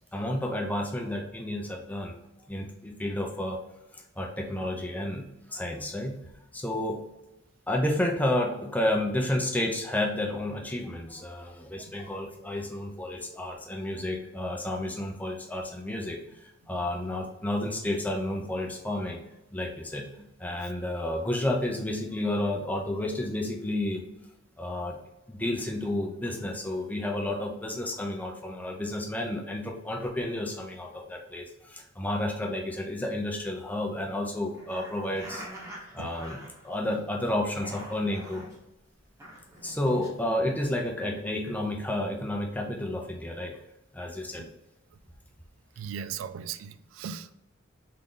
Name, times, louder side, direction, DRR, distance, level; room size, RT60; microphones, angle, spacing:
voice 1, 0.1-2.1 2.5-3.6 3.9-6.2 6.5-7.0 7.7-19.2 19.5-20.1 20.4-24.0 24.6-25.0 25.3-35.4 35.9-38.4 39.6-43.5 43.9-44.4, left 1 dB, 10° left, 1 dB, 0.7 m, -31 dB
sound 1, 34.5-37.0 37.3-38.6 39.0-40.1, right 1 dB, 15° right, 1.2 m, -45 dB
voice 2, 45.8-47.3, right 7 dB, 90° right, 13 dB, 0.3 m, -38 dB
3.8 x 3.6 x 3.8 m, 0.95 s
head